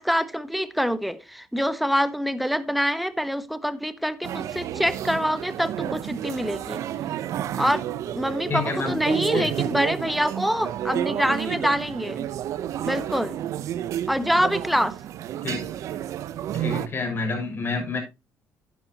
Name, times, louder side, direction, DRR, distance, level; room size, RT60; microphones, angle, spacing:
voice 1, 0.0-6.8 7.5-7.8 8.1-12.3 12.9-13.4 14.1-15.0, equal, ahead, 1.3 m, -25 dB
sound 1, 4.2-16.9, right 11 dB, 65° right, 0.9 m, -31 dB
voice 2, 8.5-9.0 9.3-9.5 15.4-15.6 16.5-18.0, left 4 dB, 40° left, 6.8 m, -28 dB
11.0 x 10.5 x 3.0 m
supercardioid pair, 75°, 6 cm